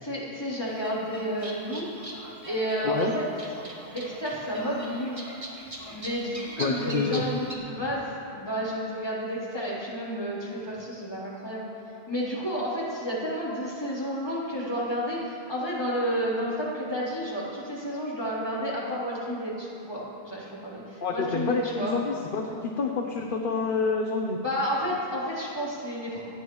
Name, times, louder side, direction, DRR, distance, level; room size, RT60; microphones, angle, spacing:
voice 1, 0.0-1.9 2.4-3.3 3.9-5.2 5.8-11.7 12.1-21.9 24.4-26.2, equal, 25° left, -8 dB, 3.5 m, -31 dB
sound 1, 0.7-7.6, right 1 dB, 30° right, 1.9 m, -41 dB
voice 2, 6.6-7.2 21.0-24.4, left 4 dB, 55° left, 1 dB, 1.0 m, -28 dB
27.5 x 9.2 x 3.1 m, 2.9 s
omnidirectional pair, 1.1 m